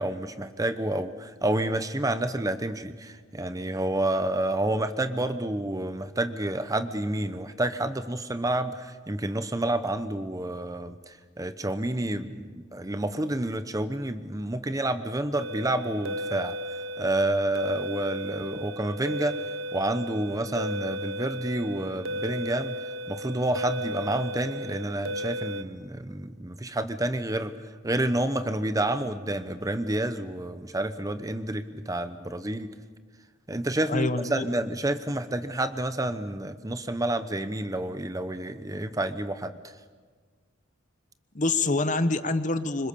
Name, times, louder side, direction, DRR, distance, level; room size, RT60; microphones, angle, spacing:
voice 1, 0.0-16.6 17.0-19.4 19.7-22.8 23.1-27.5 27.8-32.7 33.5-39.5, right 1 dB, 15° right, 11 dB, 0.8 m, -29 dB
sound 1, 15.4-25.6, equal, 75° right, 1.0 m, -35 dB
voice 2, 33.9-34.4 41.3-42.9, left 3 dB, 40° left, 12 dB, 1.0 m, -26 dB
26.5 x 25.5 x 6.9 m, 1.5 s
head